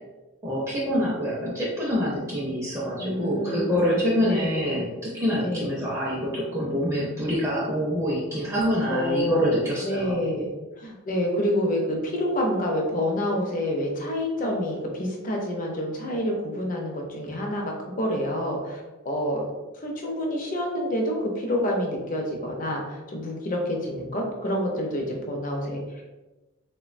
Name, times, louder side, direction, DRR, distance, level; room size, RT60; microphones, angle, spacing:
voice 1, 0.4-10.2, equal, 15° right, -5 dB, 0.4 m, -26 dB
voice 2, 3.0-4.7 5.4-5.6 8.5-10.5 10.8-17.6 18.0-19.5 19.8-26.1, equal, 40° left, 0 dB, 0.5 m, -28 dB
3.4 x 2.1 x 2.4 m, 1.1 s
head